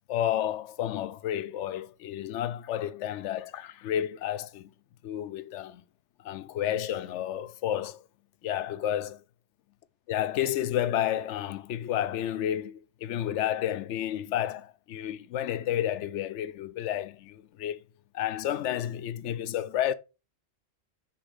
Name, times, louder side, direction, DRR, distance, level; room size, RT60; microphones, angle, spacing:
voice 1, 0.1-4.7 5.0-5.8 6.2-8.0 8.4-9.2 10.1-17.8 18.1-19.9, left 11 dB, 85° left, 0.9 m, -31 dB
6.0 x 3.8 x 5.0 m
omnidirectional pair, 1.2 m